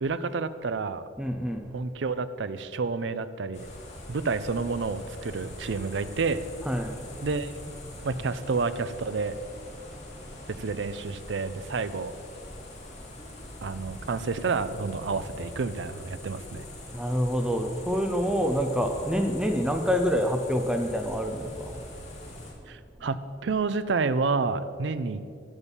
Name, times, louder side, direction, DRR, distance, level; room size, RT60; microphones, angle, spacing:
voice 1, 0.0-1.0 1.7-3.7 4.1-6.5 7.2-7.5 8.0-9.4 10.5-12.1 13.6-16.7 22.7-25.2, right 4 dB, 70° right, 13 dB, 0.5 m, -29 dB
voice 2, 1.2-1.6 6.6-7.0 10.1-10.4 13.4-13.5 16.9-21.9, equal, 5° right, 4 dB, 0.5 m, -27 dB
sound 1, 3.5-22.5, left 1 dB, 40° left, 1.8 m, -43 dB
8.1 x 7.3 x 7.1 m, 2.4 s
head